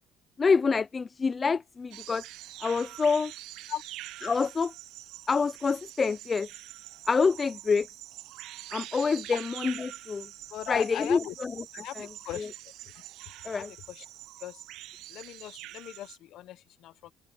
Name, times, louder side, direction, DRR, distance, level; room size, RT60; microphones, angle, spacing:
voice 1, 0.4-2.2 2.6-3.3 4.2-4.7 5.3-6.5 7.1-7.9 8.7-9.7 10.1-10.3 10.7-11.5 12.0-12.1 12.4-12.5 13.4-13.7, left 5 dB, 25° left, 0.5 m, -26 dB
sound 1, 1.9-16.2, right 15 dB, 80° right, 0.9 m, -45 dB
voice 2, 10.5-11.3 11.7-12.5 13.5-14.1 14.4-14.6 15.1-17.1, left 13 dB, 65° left, 1.2 m, -39 dB
open air
cardioid pair, 140°, 0 cm